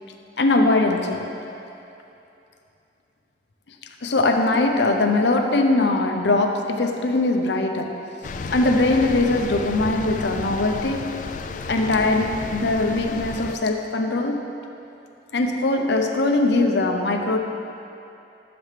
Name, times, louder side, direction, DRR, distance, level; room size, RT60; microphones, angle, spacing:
voice 1, 0.4-1.3 4.0-8.0 8.5-11.1 11.7-14.4 15.3-17.4, left 2 dB, 70° left, 4 dB, 0.7 m, -21 dB
sound 1, 8.2-13.6, left 4 dB, 45° left, 0.3 m, -32 dB
12.0 x 7.5 x 3.3 m, 2.8 s
head